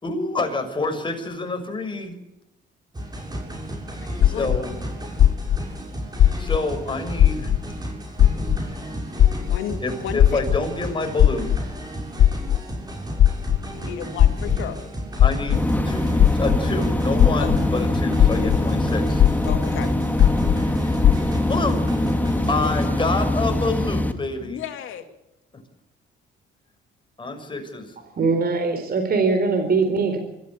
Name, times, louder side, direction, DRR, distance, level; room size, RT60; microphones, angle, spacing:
voice 1, 0.0-2.2 4.2-4.7 6.2-7.5 9.8-11.5 15.2-16.1 16.3-19.2 21.5-21.8 22.5-24.6 27.2-27.9, left 3 dB, 25° left, 4 dB, 6.4 m, -27 dB
sound 1, 2.9-22.9, right 1 dB, 20° right, 7.1 m, -33 dB
voice 2, 4.1-4.5 9.4-10.4 13.7-14.8 17.4-17.5 18.4-18.5 19.4-19.9 24.4-25.1, left 10 dB, 80° left, 6 dB, 2.7 m, -33 dB
sound 2, 4.2-4.6 5.2-5.6 6.2-6.6 7.2-7.6 8.2-8.6 9.2-9.6 10.2-10.6 11.2-11.6 12.2-12.6 13.2-13.6 14.2-14.6 15.2-15.6 16.2-16.6 17.2-17.6 18.2-18.6 19.2-19.6 20.2-20.5 21.0-21.1, left 11 dB, 60° left, 0.8 m, -15 dB
sound 3, 15.5-24.1, left 1 dB, 10° left, 2.4 m, -23 dB
voice 3, 28.2-30.2, right 4 dB, 50° right, 6 dB, 4.2 m, -21 dB
25.0 x 14.5 x 8.8 m, 0.89 s
cardioid pair, 90°, 20 cm